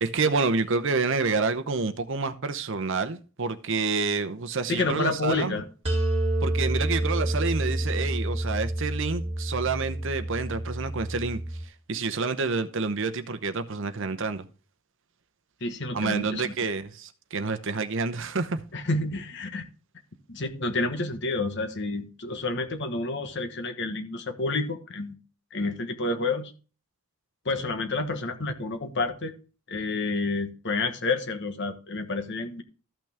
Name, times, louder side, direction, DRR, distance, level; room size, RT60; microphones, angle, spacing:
voice 1, 0.0-5.6 6.4-14.5 15.9-18.6, right 4 dB, 55° right, 10 dB, 0.8 m, -28 dB
voice 2, 4.7-5.6 15.6-16.5 18.7-19.6 20.3-25.2 25.5-26.5 27.4-29.3 29.7-32.6, left 3 dB, 50° left, 7 dB, 1.2 m, -29 dB
sound 1, 5.8-11.6, right 1 dB, 30° right, 3.3 m, -28 dB
13.5 x 6.0 x 3.5 m, 0.36 s
head